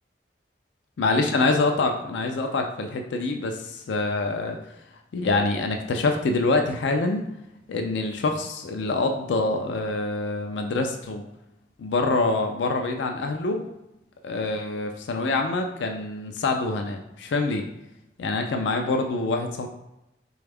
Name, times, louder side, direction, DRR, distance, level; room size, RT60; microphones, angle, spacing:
voice 1, 1.0-4.6 5.1-7.3 7.7-11.2 11.8-13.6 14.2-17.7 18.2-19.7, left 3 dB, 85° left, 4 dB, 0.4 m, -25 dB
4.2 x 2.3 x 3.3 m, 0.88 s
head